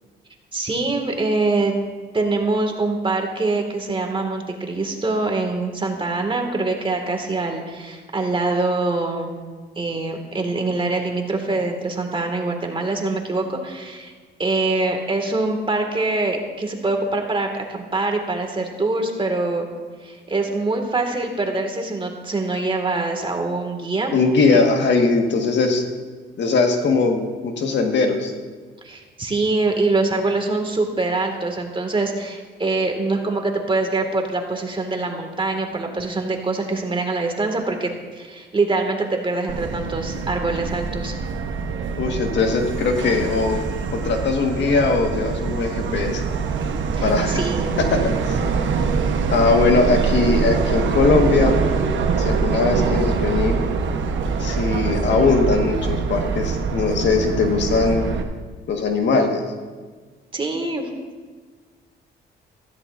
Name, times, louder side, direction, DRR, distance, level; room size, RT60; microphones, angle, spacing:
voice 1, 0.5-1.7 2.1-9.3 9.8-14.1 14.4-19.7 20.0-24.2 24.5-24.6 28.8-41.2 46.9-47.8 60.3-60.9, right 3 dB, 25° right, 3 dB, 2.1 m, -24 dB
voice 2, 24.1-25.8 26.4-28.3 42.0-43.6 43.9-46.2 47.0-47.5 47.8-48.4 49.3-51.6 52.2-53.6 54.4-58.1 58.7-59.4, left 4 dB, 65° left, 3 dB, 1.7 m, -20 dB
Subway metro underground, 39.5-58.2, right 5 dB, 70° right, 1.1 m, -24 dB
16.0 x 14.0 x 2.6 m, 1.5 s
cardioid pair, 90°, 20 cm